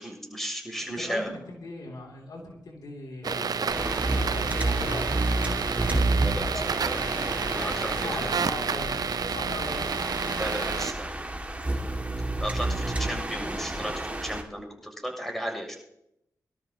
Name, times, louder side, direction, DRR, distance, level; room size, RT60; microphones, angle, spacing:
voice 1, 0.0-1.3 6.2-7.1 7.5-8.1 10.4-11.1 12.4-13.9 14.2-15.7, equal, 5° left, 2 dB, 7.0 m, -34 dB
voice 2, 0.9-3.5 3.9-5.5 8.0-9.9, left 2 dB, 80° left, 0 dB, 2.9 m, -40 dB
sound 1, 3.2-9.5, left 1 dB, 35° left, 2.9 m, -41 dB
sound 2, 3.2-10.9, right 6 dB, 70° right, 0.5 m, -30 dB
sound 3, 3.7-14.4, right 2 dB, 20° right, 2.2 m, -30 dB
24.5 x 13.0 x 2.9 m, 0.79 s
cardioid pair, 50°, 7 cm